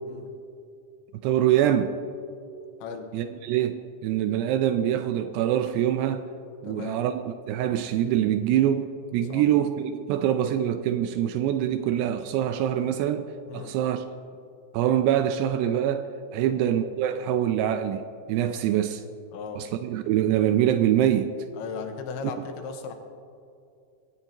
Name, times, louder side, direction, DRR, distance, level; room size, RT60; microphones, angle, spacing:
voice 1, 1.2-2.0 3.1-6.2 6.6-13.3 13.5-14.0 14.7-18.0 18.3-19.0 19.6-21.3, right 11 dB, 80° right, 9 dB, 2.5 m, -24 dB
voice 2, 6.6-7.0 9.3-9.4 13.5-13.7 16.4-16.6 19.3-19.6 21.6-22.9, left 5 dB, 90° left, 5 dB, 3.5 m, -37 dB
21.5 x 16.5 x 2.9 m, 2.5 s
omnidirectional pair, 5.2 m